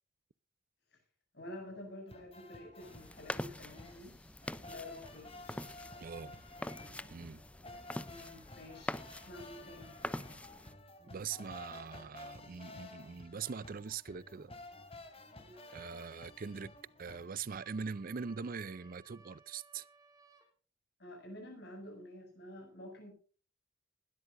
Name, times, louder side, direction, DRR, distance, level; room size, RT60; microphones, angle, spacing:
voice 1, 1.3-4.2 4.7-5.3 8.1-9.0 9.3-10.0 15.4-15.6 21.0-23.1, left 1 dB, 65° left, 7.6 m, -49 dB
sound 1, 2.1-17.3, left 2 dB, 35° left, 3.1 m, -53 dB
sound 2, 2.8-10.7, left 1 dB, 5° left, 0.5 m, -45 dB
voice 2, 6.0-6.4 7.1-7.4 11.1-14.5 15.7-16.7 17.0-19.8, right 6 dB, 50° right, 0.5 m, -42 dB
sound 3, 15.5-16.1 17.5-20.5, right 3 dB, 20° right, 3.1 m, -62 dB
20.5 x 13.0 x 2.6 m
head